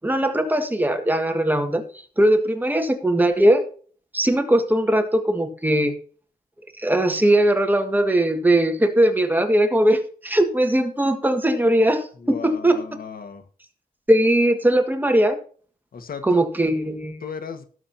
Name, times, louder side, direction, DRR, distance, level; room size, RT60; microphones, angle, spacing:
voice 1, 0.0-1.8 2.2-3.6 4.1-5.9 6.8-12.8 14.1-15.4 16.2-17.2, right 1 dB, 10° right, 5 dB, 1.8 m, -20 dB
voice 2, 12.2-13.4 15.9-16.4 17.2-17.6, left 6 dB, 75° left, 8 dB, 1.5 m, -35 dB
17.5 x 7.4 x 2.8 m, 0.43 s
wide cardioid pair, 140°, 15 cm